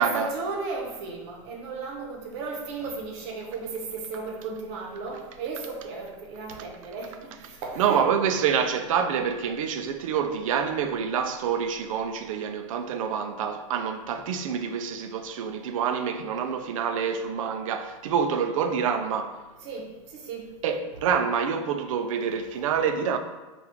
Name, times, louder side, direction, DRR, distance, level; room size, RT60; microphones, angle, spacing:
voice 1, 0.0-7.8 19.6-20.5 22.5-22.6, right 4 dB, 55° right, 0.8 m, -35 dB
voice 2, 7.8-19.3 20.6-23.2, right 7 dB, 80° right, 0.4 m, -27 dB
3.4 x 2.4 x 2.9 m
supercardioid pair, 130°, 17 cm